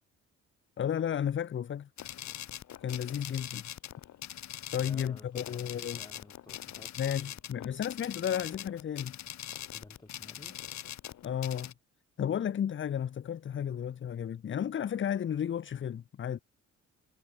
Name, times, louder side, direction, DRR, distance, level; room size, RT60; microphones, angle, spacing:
voice 1, 0.8-1.9 2.8-3.6 4.7-6.0 7.0-9.1 11.2-11.7 12.2-16.4, left 9 dB, 40° left, 0.8 m, -33 dB
sound 1, 2.0-11.7, left 12 dB, 65° left, 1.5 m, -43 dB
voice 2, 4.7-7.4 9.7-10.6, left 2 dB, 15° left, 7.4 m, -54 dB
cardioid pair, 90°, 30 cm